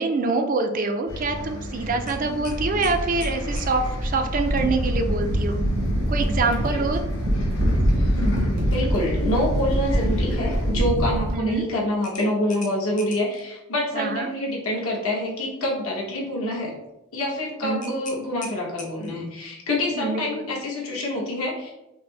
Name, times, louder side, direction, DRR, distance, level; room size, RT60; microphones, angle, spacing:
voice 1, 0.0-5.6 6.1-7.0 11.3-11.7 13.9-14.3 17.6-17.9 20.0-20.2, right 3 dB, 40° right, 6 dB, 0.3 m, -25 dB
Bus, 1.1-10.7, equal, 60° left, 0.9 m, -33 dB
sound 1, 2.1-3.7 6.4-6.6 7.0-7.1 12.0-13.4 17.8-19.3, left 3 dB, 35° left, 0.6 m, -41 dB
sound 2, 3.5-11.3, equal, 85° right, 1.1 m, -24 dB
voice 2, 7.9-16.7 17.1-21.7, left 1 dB, 80° left, -3 dB, 1.1 m, -27 dB
5.1 x 2.1 x 3.2 m, 0.92 s
head